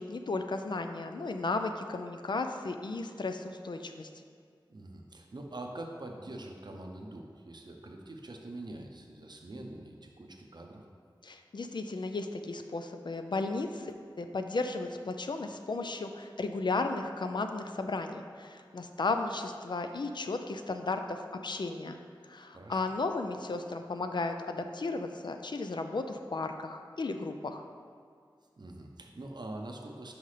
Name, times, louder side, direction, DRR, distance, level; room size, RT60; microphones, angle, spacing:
voice 1, 0.0-4.1 11.2-27.7, left 3 dB, 60° left, 6 dB, 0.4 m, -34 dB
voice 2, 4.7-10.9 22.5-22.9 28.6-30.1, right 2 dB, 60° right, 2 dB, 0.6 m, -44 dB
5.7 x 5.4 x 3.3 m, 2.1 s
wide cardioid pair, 55°, 9 cm